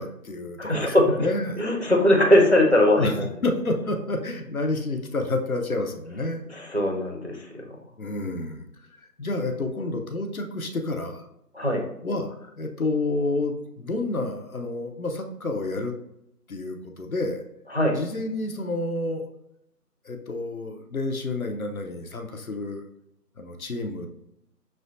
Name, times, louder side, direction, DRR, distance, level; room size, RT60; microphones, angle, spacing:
voice 1, 0.0-1.6 2.9-6.4 8.0-8.6 9.2-11.3 12.0-15.9 16.5-17.4 17.9-19.2 20.0-22.8 23.4-24.1, left 2 dB, 60° left, 4 dB, 0.6 m, -29 dB
voice 2, 0.6-1.3 1.6-3.3 6.5-7.5 11.5-11.8 17.7-18.0, left 1 dB, 45° right, 1 dB, 0.5 m, -20 dB
6.0 x 2.2 x 2.6 m, 0.80 s
figure-of-eight pair, 180°, 49 cm